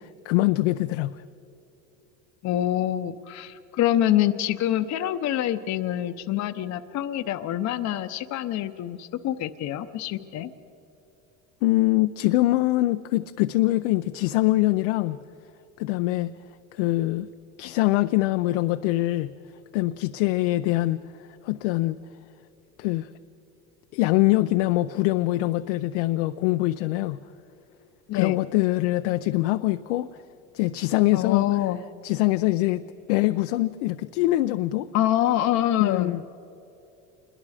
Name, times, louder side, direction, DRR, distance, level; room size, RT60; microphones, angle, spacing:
voice 1, 0.2-1.2 11.6-15.2 15.8-16.3 16.7-17.3 17.6-19.3 19.7-21.0 21.4-22.0 22.8-23.1 23.9-27.2 28.1-30.1 30.5-31.4 32.0-32.8 33.1-34.9 35.8-36.2, left 18 dB, 85° left, 10 dB, 0.6 m, -23 dB
voice 2, 2.4-10.5 28.1-28.4 31.1-31.8 34.9-36.2, left 12 dB, 50° left, 9 dB, 0.8 m, -26 dB
26.5 x 21.5 x 4.9 m, 2.8 s
supercardioid pair, 100°, 35 cm